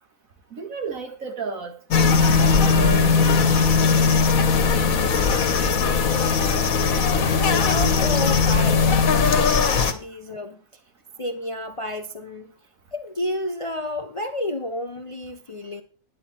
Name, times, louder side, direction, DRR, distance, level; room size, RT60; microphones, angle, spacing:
voice 1, 0.5-4.2, right 5 dB, 75° right, 2.2 m, -33 dB
sound 1, 1.9-9.9, left 5 dB, 80° left, 1.5 m, -19 dB
voice 2, 7.4-10.6 11.2-12.5 12.9-15.8, left 1 dB, 35° left, 0.6 m, -31 dB
10.0 x 9.6 x 4.2 m
omnidirectional pair, 1.4 m